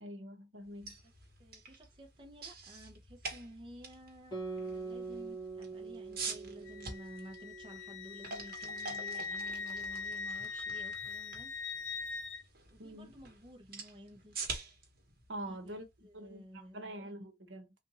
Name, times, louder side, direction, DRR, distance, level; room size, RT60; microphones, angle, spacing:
voice 1, 0.0-1.0 12.8-13.1 15.3-15.9 16.1-17.7, right 1 dB, 80° right, 1.0 m, -45 dB
sound 1, 0.6-16.6, right 4 dB, 55° right, 1.2 m, -47 dB
voice 2, 1.4-11.5 12.7-14.4 15.5-17.1, equal, 25° right, 0.7 m, -53 dB
Guitar, 4.3-9.2, right 4 dB, 25° left, 1.9 m, -44 dB
Wind instrument woodwind instrument, 6.7-12.4, left 4 dB, 80° left, 0.8 m, -41 dB
3.6 x 2.6 x 2.9 m
head